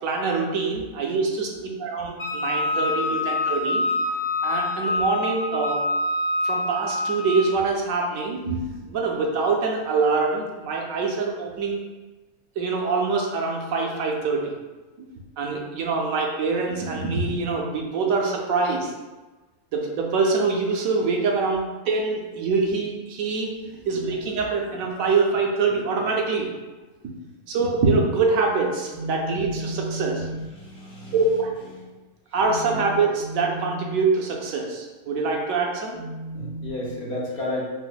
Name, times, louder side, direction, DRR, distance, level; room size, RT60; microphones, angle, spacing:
voice 1, 0.0-3.9 4.4-5.8 6.4-11.9 12.6-14.5 15.0-15.1 15.4-18.9 19.7-23.5 23.9-26.5 27.0-27.1 27.5-30.4 31.1-31.5 32.3-36.7, right 4 dB, 75° right, 0 dB, 1.0 m, -24 dB
voice 2, 1.5-1.9 2.9-3.2 30.5-31.2 31.7-32.0 32.7-32.8 36.3-37.7, left 1 dB, 60° left, -4 dB, 0.8 m, -33 dB
Wind instrument woodwind instrument, 2.2-7.5, left 2 dB, 30° left, 0.6 m, -26 dB
5.7 x 2.1 x 2.2 m, 1.2 s
omnidirectional pair, 1.5 m